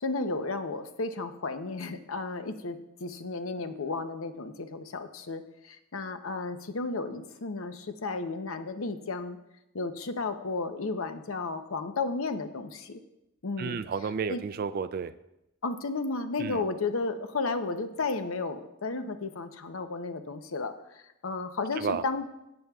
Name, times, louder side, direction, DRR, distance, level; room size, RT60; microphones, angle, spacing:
voice 1, 0.0-5.4 5.7-9.4 9.7-13.0 13.4-13.8 14.3-14.4 15.6-20.7 21.2-22.3, left 3 dB, 80° left, 8 dB, 0.8 m, -33 dB
voice 2, 13.6-15.1 16.4-16.6 21.8-22.0, right 6 dB, 45° right, 12 dB, 0.3 m, -32 dB
15.5 x 8.8 x 2.4 m, 0.88 s
head